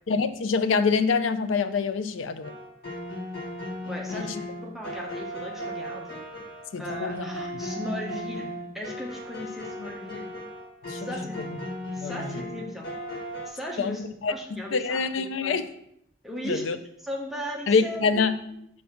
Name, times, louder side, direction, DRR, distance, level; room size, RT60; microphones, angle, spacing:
voice 1, 0.1-2.5 4.1-4.3 6.7-7.3 10.9-11.1 11.4-11.5 12.0-12.4 13.8-15.6 16.4-16.8 17.7-18.3, left 5 dB, 85° left, 11 dB, 0.5 m, -26 dB
sound 1, 2.4-13.5, equal, 55° left, 1.5 m, -36 dB
voice 2, 3.8-6.1 6.8-10.3 11.0-11.3 11.9-15.6 16.2-16.7 17.0-18.2, left 1 dB, ahead, -2 dB, 0.8 m, -37 dB
5.6 x 3.2 x 5.7 m, 0.74 s
head